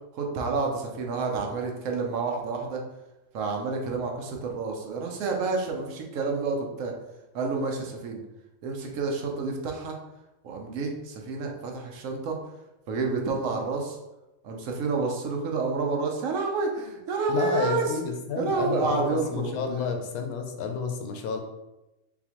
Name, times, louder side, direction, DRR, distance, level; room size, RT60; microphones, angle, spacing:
voice 1, 0.1-2.8 3.3-6.9 7.3-8.2 8.6-10.0 10.4-12.4 12.9-14.0 14.4-17.9 18.4-19.9, right 4 dB, 65° right, 1 dB, 1.1 m, -29 dB
voice 2, 17.3-21.4, left 5 dB, 80° left, 5 dB, 1.1 m, -30 dB
4.1 x 3.8 x 3.0 m, 0.98 s
omnidirectional pair, 1.5 m